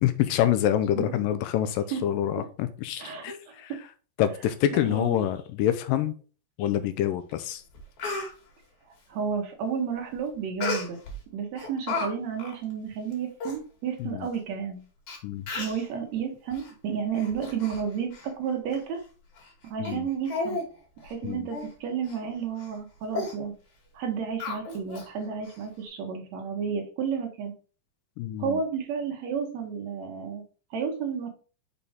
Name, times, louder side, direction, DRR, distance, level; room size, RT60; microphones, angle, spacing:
voice 1, 0.0-3.7 4.2-6.2 6.6-7.6 14.0-14.3 15.2-15.5 19.8-20.1 21.2-21.5 28.2-28.6, left 11 dB, 80° left, 11 dB, 2.0 m, -26 dB
voice 2, 3.0-3.8 4.3-5.2 8.9-11.0 11.3-14.8 15.5-19.0 19.6-20.6 21.0-23.5 23.9-27.5 28.4-30.4 30.7-31.3, right 6 dB, 65° right, 3 dB, 1.8 m, -32 dB
Speech, 7.3-7.4 7.7-8.3 10.6-11.2 11.6-12.1 12.4-12.6 13.1-13.2 13.4-13.6 14.3-14.4 15.1-15.2 15.5-15.8 16.5-16.7 17.1-17.8 18.1-18.3 18.7-18.8 19.4-19.5 19.8-20.0 20.3-20.7 21.0-21.1 21.5-21.7 22.1-22.2 22.6-22.8 23.1-23.3 24.4-25.1 25.4-25.5, left 3 dB, 55° left, 3.0 m, -33 dB
6.7 x 4.4 x 3.5 m, 0.37 s
omnidirectional pair, 4.4 m